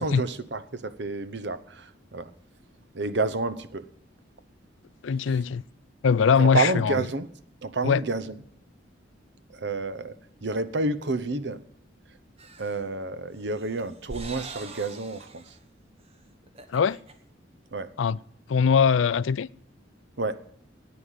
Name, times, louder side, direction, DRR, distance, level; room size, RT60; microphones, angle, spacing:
voice 1, 0.0-2.3 2.9-3.9 6.4-7.3 7.6-8.4 9.5-10.1 10.4-11.6 12.6-15.4 17.7-17.9 20.2-20.4, right 3 dB, 65° right, 0.9 m, -29 dB
voice 2, 5.0-5.6 6.0-7.0 7.8-8.0 16.7-17.0 18.0-18.2 18.5-19.5, left 6 dB, 90° left, 0.4 m, -21 dB
sound 1, 12.4-12.8 13.4-15.6 16.0-16.1 16.4-17.1, right 2 dB, 35° right, 1.2 m, -43 dB
10.0 x 9.2 x 9.1 m
head